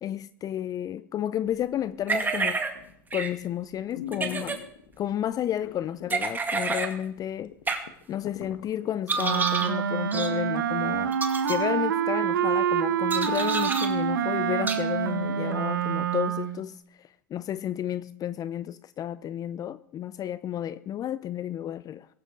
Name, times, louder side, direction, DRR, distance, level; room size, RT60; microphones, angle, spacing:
voice 1, 0.0-2.6 3.1-4.6 5.0-7.5 8.1-11.2 11.5-22.1, left 11 dB, 35° left, 0.5 m, -32 dB
sound 1, 2.1-2.7 3.1-3.3 4.1-4.6 6.1-6.9 7.7-7.8 9.1-9.7 10.1-10.3 11.1-11.6 13.1-13.9 14.7-14.8, right 4 dB, 15° right, 2.3 m, -28 dB
sound 2, 2.7-3.1 3.5-3.6 3.9-5.0 5.6-6.3 6.6-6.7 7.2-7.3 7.5-9.4 9.8-9.9, left 10 dB, 80° left, 1.4 m, -41 dB
Wind instrument woodwind instrument, 9.2-16.6, right 8 dB, 90° right, 1.2 m, -27 dB
18.0 x 15.5 x 3.8 m
hypercardioid pair, 100°, 11 cm